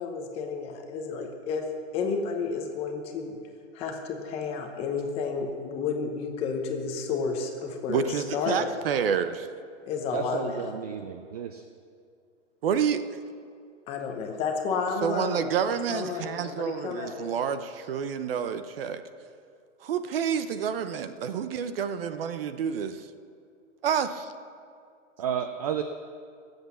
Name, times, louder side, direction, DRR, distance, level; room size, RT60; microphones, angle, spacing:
voice 1, 0.0-1.7 1.9-3.4 3.7-8.8 9.9-10.7 13.9-17.3, left 5 dB, 15° left, 3 dB, 0.9 m, -31 dB
voice 2, 7.9-9.5 12.6-13.0 15.0-19.0 19.8-23.0 23.8-24.3, right 7 dB, 50° right, 11 dB, 0.8 m, -28 dB
voice 3, 10.1-11.6 25.2-25.8, right 8 dB, 35° right, 8 dB, 0.5 m, -32 dB
18.5 x 8.1 x 7.0 m, 2.3 s
hypercardioid pair, 165°, 37 cm